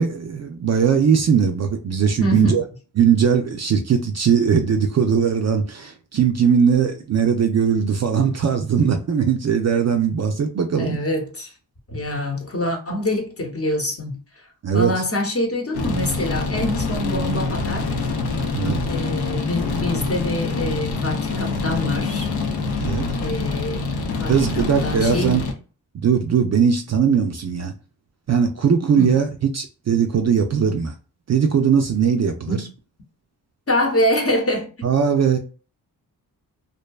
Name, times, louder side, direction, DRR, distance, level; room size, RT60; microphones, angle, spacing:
voice 1, 0.0-2.6 3.0-11.0 14.6-15.0 18.5-18.8 22.8-23.1 24.3-25.4 25.9-27.7 28.3-29.3 29.5-30.9 31.3-32.6 34.8-35.4, right 7 dB, 40° right, 0.4 m, -19 dB
voice 2, 2.2-2.6 10.8-11.5 11.9-14.2 14.7-17.9 18.9-22.3 23.2-25.5 29.0-29.1 32.5-32.6 33.7-34.7, left 1 dB, 35° left, 0.8 m, -25 dB
sound 1, 15.7-25.5, left 3 dB, 70° left, 0.6 m, -25 dB
2.5 x 2.1 x 2.2 m
supercardioid pair, 40°, 41 cm